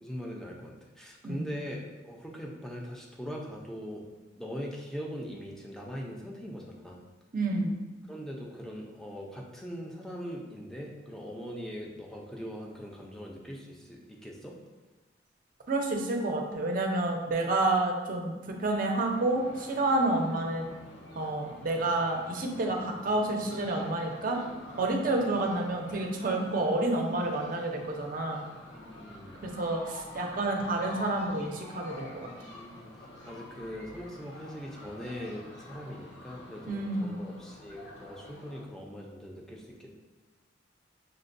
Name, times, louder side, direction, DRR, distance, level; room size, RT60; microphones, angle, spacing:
voice 1, 0.0-4.0 4.4-7.0 8.1-14.5 28.7-29.4 32.4-32.9 33.2-40.0, equal, 5° left, -2 dB, 0.5 m, -41 dB
voice 2, 7.3-7.8 15.7-20.7 21.1-24.4 24.8-28.5 29.4-32.3 36.7-37.2, right 2 dB, 50° right, 1 dB, 0.5 m, -29 dB
sound 1, 19.0-38.6, left 1 dB, 90° left, 1.0 m, -48 dB
6.5 x 2.2 x 2.5 m, 1.2 s
head